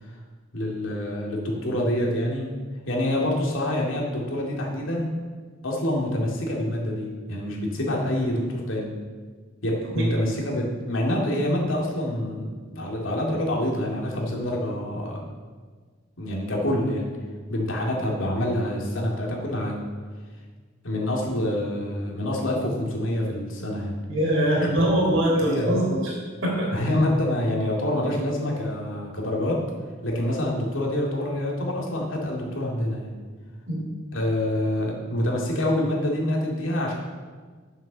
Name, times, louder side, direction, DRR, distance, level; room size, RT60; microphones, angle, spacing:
voice 1, 0.5-2.5 2.9-5.1 5.6-8.9 9.6-15.2 16.2-17.1 17.5-19.8 20.8-24.0 24.6-24.7 25.3-25.8 26.7-29.6 30.0-33.1 34.1-36.9, left 1 dB, 70° left, -2 dB, 2.5 m, -26 dB
voice 2, 24.1-26.2 26.4-26.7 33.7-33.8, right 1 dB, 65° right, -2 dB, 3.6 m, -22 dB
9.0 x 7.4 x 6.7 m, 1.5 s
head